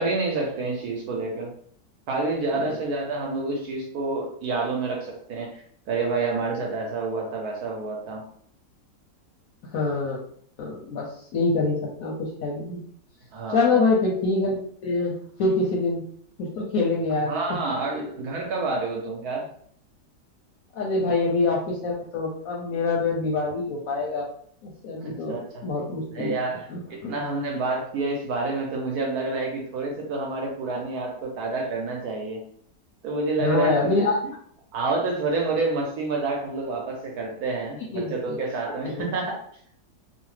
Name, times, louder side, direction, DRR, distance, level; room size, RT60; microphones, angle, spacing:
voice 1, 0.0-1.5 2.1-8.2 13.3-13.9 17.2-19.5 25.0-25.6 26.1-32.4 33.0-34.1 34.7-39.4, right 3 dB, 65° right, 0 dB, 1.1 m, -28 dB
voice 2, 9.7-10.2 10.6-12.8 13.5-16.0 16.4-17.3 17.9-18.0 20.7-24.3 24.6-26.3 26.7-27.1 33.4-34.2 37.9-38.4 38.7-39.0, left 3 dB, 65° left, -2 dB, 0.9 m, -25 dB
3.0 x 2.1 x 3.1 m, 0.62 s
omnidirectional pair, 1.9 m